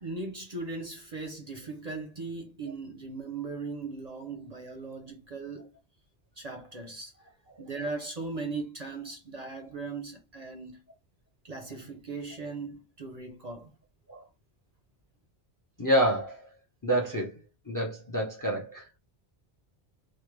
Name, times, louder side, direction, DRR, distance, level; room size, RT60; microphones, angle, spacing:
voice 1, 0.0-5.7 6.4-7.3 7.6-10.8 11.4-13.7, right 3 dB, 45° right, 0.6 m, -38 dB
voice 2, 15.8-16.5 16.8-17.3 17.7-19.0, right 1 dB, 25° left, 0.5 m, -28 dB
3.2 x 2.1 x 3.1 m
omnidirectional pair, 1.1 m